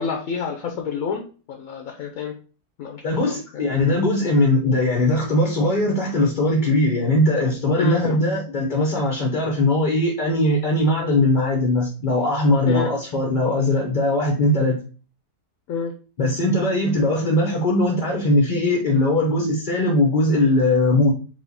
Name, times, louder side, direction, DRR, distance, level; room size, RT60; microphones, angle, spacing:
voice 1, 0.0-2.3 2.8-3.6 7.8-8.2 12.7-12.9 15.7-15.9, left 6 dB, 65° left, 3 dB, 1.0 m, -28 dB
voice 2, 3.0-14.8 16.2-21.1, left 1 dB, 40° left, 0 dB, 0.7 m, -20 dB
4.7 x 2.8 x 4.1 m, 0.37 s
omnidirectional pair, 1.8 m